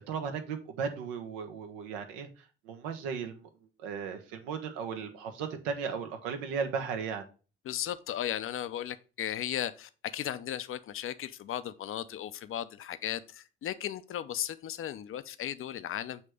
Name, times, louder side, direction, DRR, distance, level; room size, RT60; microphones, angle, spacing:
voice 1, 0.1-2.3 2.6-3.5 3.8-7.2, right 6 dB, 70° right, 1.1 m, -36 dB
voice 2, 7.6-16.2, left 11 dB, 45° left, 0.6 m, -36 dB
7.1 x 3.3 x 4.9 m
hypercardioid pair, 50°, 30 cm